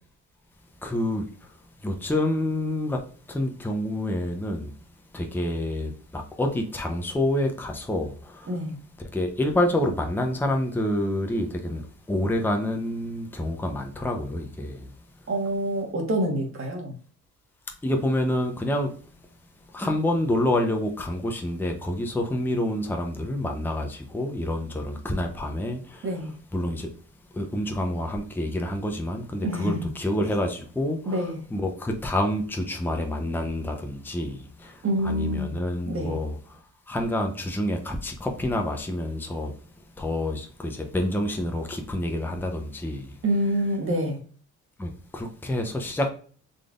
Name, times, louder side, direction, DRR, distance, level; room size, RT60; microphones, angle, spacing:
voice 1, 0.8-1.2 1.8-3.0 3.3-4.7 5.1-8.5 9.1-11.8 12.1-14.9 17.8-18.9 19.7-26.1 26.5-26.9 27.3-34.8 35.0-36.4 36.9-39.5 40.0-43.1 44.8-46.1, left 1 dB, 5° left, 0.7 m, -28 dB
voice 2, 15.3-16.9 26.0-26.3 29.4-29.9 31.0-31.4 34.8-35.6 35.9-36.2 43.2-44.2, equal, 45° right, 1.5 m, -27 dB
3.9 x 3.3 x 2.4 m
cardioid pair, 90°, 30 cm